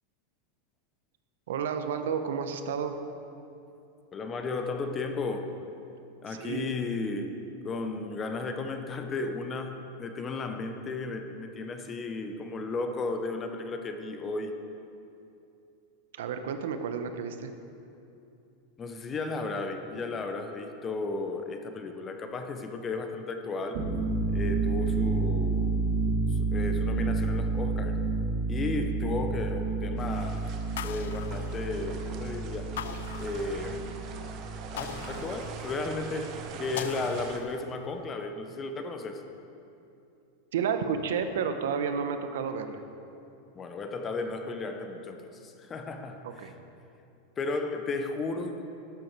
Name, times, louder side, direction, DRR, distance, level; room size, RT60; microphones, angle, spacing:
voice 1, 1.5-2.9 6.3-6.7 16.1-17.5 40.5-42.8 46.2-46.5, right 6 dB, 80° right, 8 dB, 0.8 m, -31 dB
voice 2, 4.1-5.5 6.2-7.3 7.6-14.6 18.8-23.8 24.3-25.9 26.3-28.0 28.5-32.7 33.1-34.0 34.7-39.2 43.5-46.5 47.4-48.7, left 3 dB, 15° left, 6 dB, 0.5 m, -34 dB
low rumble, 23.6-35.2, right 3 dB, 50° right, 2.2 m, -30 dB
sound 1, 30.0-37.4, right 6 dB, 30° right, 0.7 m, -43 dB
sound 2, 30.8-32.1 32.8-33.9 34.8-36.0 36.8-37.9, left 10 dB, 85° left, 0.3 m, -41 dB
12.0 x 7.9 x 4.6 m, 2.7 s
supercardioid pair, 175°, 0 cm